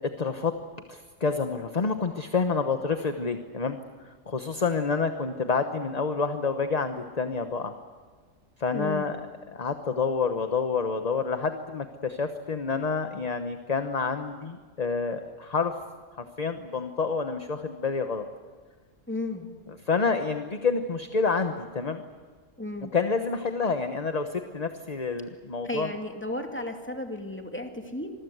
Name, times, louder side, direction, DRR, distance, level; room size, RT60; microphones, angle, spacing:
voice 1, 0.2-0.5 0.9-3.8 4.0-7.7 8.6-9.2 9.5-15.7 16.2-18.2 19.9-22.0 22.9-25.9, left 4 dB, 30° left, 7 dB, 1.1 m, -28 dB
voice 2, 8.7-9.0 19.1-19.5 22.6-22.9 25.6-28.1, left 2 dB, 10° left, 4 dB, 2.5 m, -34 dB
26.0 x 21.5 x 8.0 m, 1.5 s
omnidirectional pair, 1.4 m